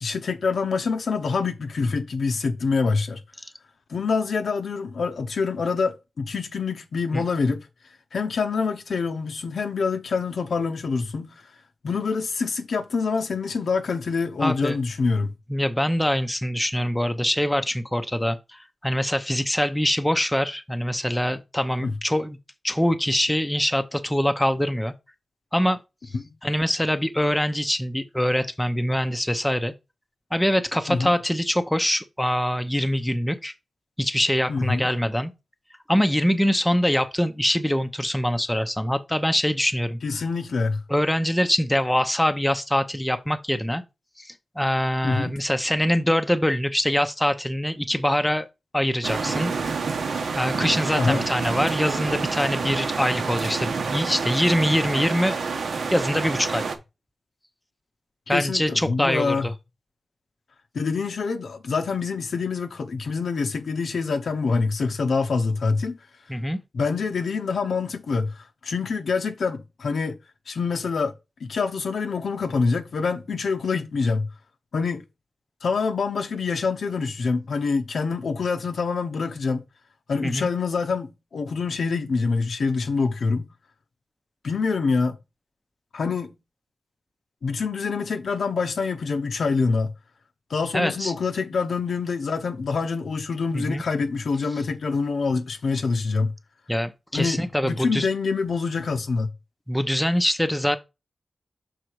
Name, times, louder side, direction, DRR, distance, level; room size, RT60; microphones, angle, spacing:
voice 1, 0.0-3.2 3.9-15.3 21.8-21.9 26.1-26.3 30.9-31.1 34.5-34.9 40.0-40.8 45.0-45.4 50.9-51.3 58.3-59.5 60.7-66.0 66.7-70.2 70.5-71.1 71.4-74.3 74.7-75.0 75.6-79.6 80.1-83.5 84.4-85.2 85.9-86.3 87.4-89.9 90.5-96.3 97.1-99.3, left 4 dB, 70° left, 0.7 m, -26 dB
voice 2, 14.4-14.8 15.5-22.4 22.6-24.9 25.5-25.8 26.4-29.7 30.3-33.5 34.0-35.3 35.9-40.2 40.9-43.8 44.2-44.3 44.6-48.5 48.7-49.5 50.4-55.4 55.9-56.6 58.3-59.5 66.3-66.6 80.2-80.5 90.7-91.1 93.5-93.8 96.7-98.1 99.7-100.8, equal, 5° left, 0.6 m, -24 dB
sound 1, 49.0-56.8, right 5 dB, 75° right, 0.9 m, -28 dB
6.5 x 3.8 x 4.6 m
wide cardioid pair, 165°, 0 cm